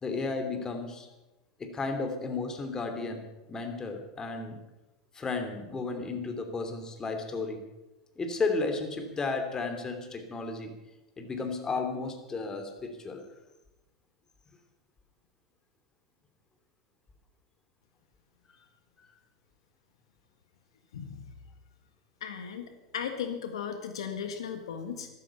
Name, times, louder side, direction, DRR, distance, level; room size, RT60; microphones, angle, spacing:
voice 1, 0.0-1.1 1.6-3.2 3.5-4.6 5.1-7.6 8.2-10.7 11.2-13.2, left 3 dB, 20° left, 6 dB, 3.0 m, -33 dB
voice 2, 20.9-21.2 22.2-25.1, left 7 dB, 80° left, 7 dB, 1.7 m, -36 dB
13.5 x 13.5 x 7.1 m, 1.0 s
hypercardioid pair, 100°, 3 cm